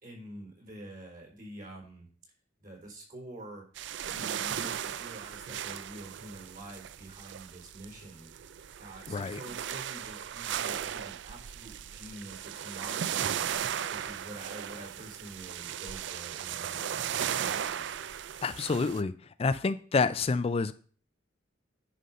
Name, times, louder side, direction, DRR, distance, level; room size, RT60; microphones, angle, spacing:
voice 1, 0.0-2.1 2.6-3.6 4.0-8.3 8.8-13.5 13.9-17.9, right 1 dB, 45° right, 0 dB, 4.0 m, -47 dB
sound 1, 3.8-19.0, right 9 dB, 65° right, 0.4 m, -36 dB
voice 2, 9.1-9.4 18.4-19.1 19.4-20.7, left 4 dB, 30° left, 13 dB, 0.3 m, -28 dB
9.9 x 5.5 x 5.4 m, 0.43 s
head